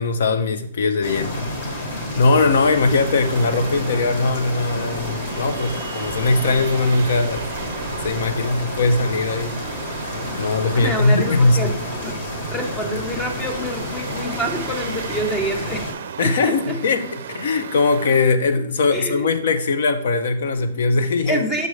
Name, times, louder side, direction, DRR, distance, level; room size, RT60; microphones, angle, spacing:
voice 1, 0.0-1.5 2.2-7.4 8.0-9.6 10.3-11.7 16.2-21.4, left 3 dB, 60° left, 10 dB, 0.7 m, -20 dB
sound 1, 1.0-15.9, left 1 dB, 35° left, 1.3 m, -30 dB
sound 2, 2.8-18.2, right 8 dB, 50° right, 0.5 m, -36 dB
voice 2, 10.7-11.7 12.0-12.2 12.5-15.9 16.2-16.8 18.9-19.3 21.3-21.7, right 1 dB, 5° left, 4 dB, 0.7 m, -26 dB
6.4 x 5.1 x 3.2 m, 0.64 s
hypercardioid pair, 170°, 0 cm